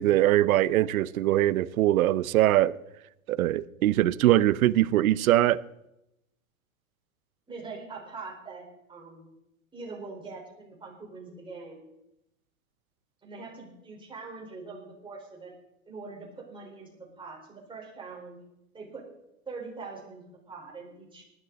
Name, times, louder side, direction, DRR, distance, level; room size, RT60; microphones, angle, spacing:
voice 1, 0.0-2.8 3.3-5.6, right 14 dB, 80° right, 0.7 m, -22 dB
voice 2, 7.5-9.3 9.7-11.8 13.2-15.5 15.9-18.4 18.7-19.0 19.5-21.2, right 4 dB, 10° right, 4.5 m, -43 dB
19.0 x 12.0 x 4.0 m
hypercardioid pair, 135°, 42 cm